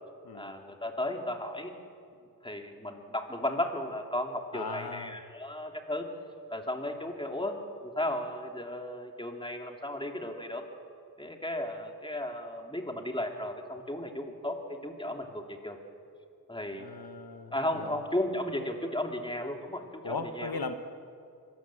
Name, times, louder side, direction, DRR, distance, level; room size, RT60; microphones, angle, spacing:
voice 1, 0.3-1.7 2.4-6.1 6.5-10.6 11.2-15.8 16.5-16.9 17.5-20.6, left 1 dB, 15° left, 3 dB, 3.1 m, -35 dB
voice 2, 4.5-5.2 16.7-18.0 20.0-20.7, left 4 dB, 85° left, 7 dB, 1.3 m, -38 dB
25.0 x 19.0 x 7.8 m, 2.4 s
wide cardioid pair, 50°, 36 cm